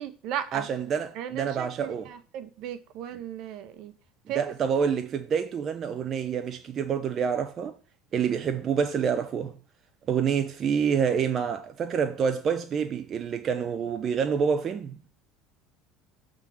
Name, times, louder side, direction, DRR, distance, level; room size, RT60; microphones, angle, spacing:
voice 1, 0.0-0.7 1.2-3.9 4.3-4.4, right 10 dB, 60° right, 1.1 m, -36 dB
voice 2, 0.5-2.1 4.3-7.8 8.1-9.5 10.1-15.0, right 7 dB, 35° right, 0.6 m, -27 dB
7.4 x 3.7 x 6.3 m
supercardioid pair, 120°, 0 cm